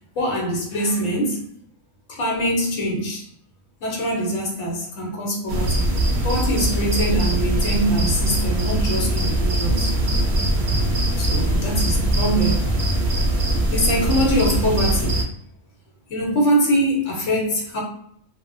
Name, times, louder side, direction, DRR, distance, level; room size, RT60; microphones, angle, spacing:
voice 1, 0.1-1.4 2.1-3.2 3.8-9.9 11.2-12.7 13.7-15.1 16.1-17.8, equal, 80° left, -2 dB, 1.2 m, -23 dB
sound 1, 5.5-15.2, right 1 dB, 55° right, 0.6 m, -21 dB
2.4 x 2.0 x 2.6 m, 0.65 s
omnidirectional pair, 1.3 m